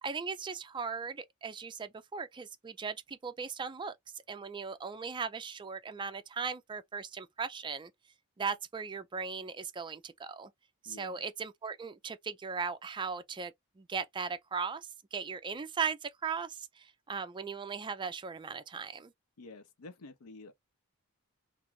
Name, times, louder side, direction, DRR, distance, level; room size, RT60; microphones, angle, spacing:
voice 1, 0.0-4.0 4.3-7.9 8.4-10.5 10.8-19.1, right 5 dB, 20° right, 0.3 m, -38 dB
voice 2, 10.8-11.2 19.4-20.5, left 3 dB, 90° left, 0.6 m, -50 dB
2.5 x 2.4 x 3.0 m
head